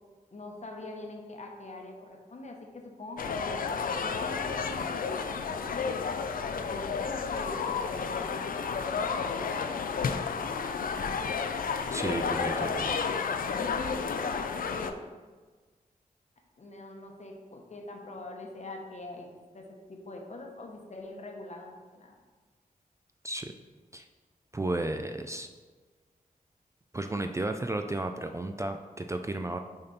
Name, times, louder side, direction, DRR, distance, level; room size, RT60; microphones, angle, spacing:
voice 1, 0.3-3.7 4.0-6.0 6.5-10.2 10.8-11.5 12.0-13.0 13.6-15.0 16.6-19.3 19.5-22.1, left 2 dB, 50° left, 1 dB, 1.1 m, -43 dB
sound 1, 3.2-14.9, left 5 dB, 70° left, 0.4 m, -31 dB
voice 2, 11.9-12.8 23.2-23.5 23.9-24.1 24.5-25.5 26.9-29.6, right 2 dB, 20° right, 6 dB, 0.3 m, -33 dB
6.5 x 4.2 x 4.1 m, 1.4 s
wide cardioid pair, 75°, 15 cm